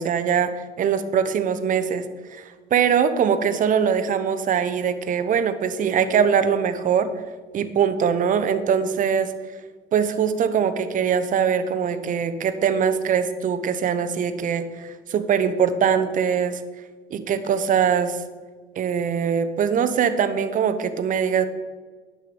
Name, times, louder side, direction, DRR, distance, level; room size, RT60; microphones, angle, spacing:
voice 1, 0.0-7.1 7.5-9.3 9.9-16.6 17.1-18.2 18.8-21.5, right 7 dB, 50° right, 10 dB, 0.9 m, -22 dB
10.5 x 7.9 x 5.1 m, 1.4 s
cardioid pair, 110°, 17 cm